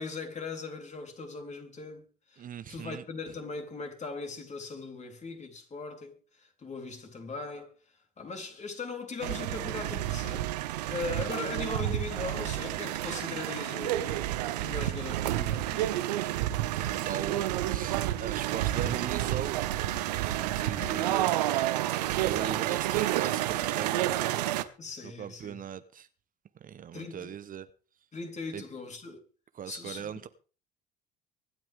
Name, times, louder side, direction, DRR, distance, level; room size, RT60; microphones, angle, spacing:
voice 1, 0.0-2.0 2.3-2.4 2.7-7.7 8.2-10.6 10.9-14.3 14.6-16.1 20.6-21.1 21.8-22.0 22.3-22.6 24.8-25.6 26.9-27.4 28.1-29.2 29.7-30.1, left 3 dB, 35° left, 3.8 m, -39 dB
voice 2, 2.4-3.0 16.7-19.9 20.2-21.3 21.7-24.4 25.0-26.1 26.5-27.7 28.5-28.6 29.5-30.3, right 9 dB, 45° right, 1.0 m, -39 dB
sound 1, 9.2-24.6, right 14 dB, 80° right, 1.0 m, -30 dB
24.5 x 9.1 x 3.6 m
hypercardioid pair, 60°, 21 cm